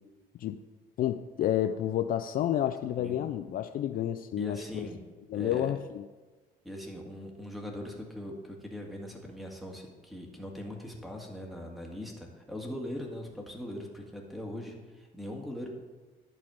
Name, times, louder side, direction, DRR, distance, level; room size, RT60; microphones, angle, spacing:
voice 1, 1.0-4.9 5.3-6.0, left 11 dB, 55° left, 10 dB, 0.4 m, -30 dB
voice 2, 4.4-5.0 5.3-5.7 6.6-15.7, left 1 dB, ahead, 1 dB, 1.8 m, -40 dB
11.0 x 4.2 x 7.6 m, 1.3 s
cardioid pair, 110°, 17 cm